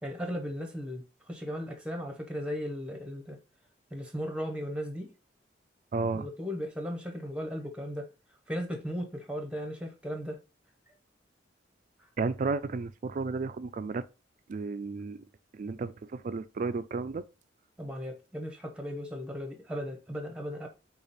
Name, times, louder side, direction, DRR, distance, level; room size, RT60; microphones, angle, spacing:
voice 1, 0.0-3.4 3.9-5.1 6.1-8.1 8.5-10.4 17.8-20.7, equal, 5° right, 0.9 m, -36 dB
voice 2, 5.9-6.3 12.2-14.0 14.5-15.2 15.5-17.2, right 4 dB, 45° right, 0.3 m, -33 dB
5.0 x 2.4 x 4.1 m
head